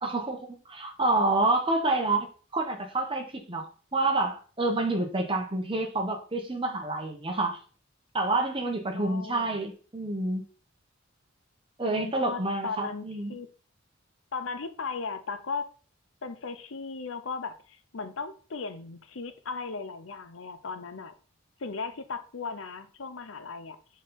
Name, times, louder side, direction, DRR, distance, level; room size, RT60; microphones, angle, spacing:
voice 1, 0.0-0.4 0.6-3.7 3.9-7.6 8.1-10.4 11.8-13.4, right 2 dB, 25° right, 1.2 m, -28 dB
voice 2, 8.9-9.6 11.8-13.5 14.3-15.7 16.2-21.1 21.6-23.8, left 4 dB, 80° left, 0.7 m, -37 dB
6.4 x 4.1 x 4.0 m
head